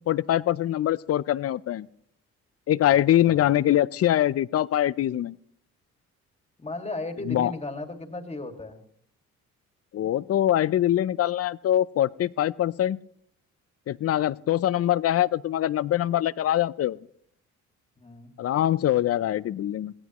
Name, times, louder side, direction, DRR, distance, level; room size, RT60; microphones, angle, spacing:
voice 1, 0.0-1.9 2.7-5.3 7.3-7.5 9.9-13.0 13.9-17.0 18.4-19.9, left 12 dB, 50° left, 19 dB, 0.5 m, -23 dB
voice 2, 6.6-8.8 18.0-18.3, left 2 dB, 20° left, 5 dB, 2.1 m, -35 dB
22.5 x 16.5 x 3.0 m, 0.64 s
cardioid pair, 90°, 30 cm